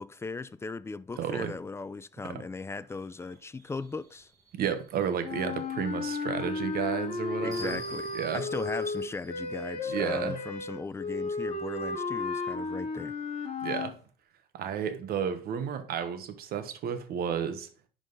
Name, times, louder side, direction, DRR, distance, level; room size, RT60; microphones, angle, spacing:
voice 1, 0.0-4.3 7.4-13.2, left 4 dB, 15° left, 0.4 m, -38 dB
voice 2, 1.2-1.5 2.2-2.4 4.5-7.8 8.1-8.4 9.9-10.4 13.6-13.9 14.5-17.9, right 8 dB, 65° right, 1.1 m, -32 dB
sound 1, 2.9-10.4, right 1 dB, 20° right, 2.0 m, -51 dB
sound 2, 5.2-13.9, left 3 dB, 40° left, 1.6 m, -34 dB
10.5 x 3.9 x 4.0 m
cardioid pair, 110°, 17 cm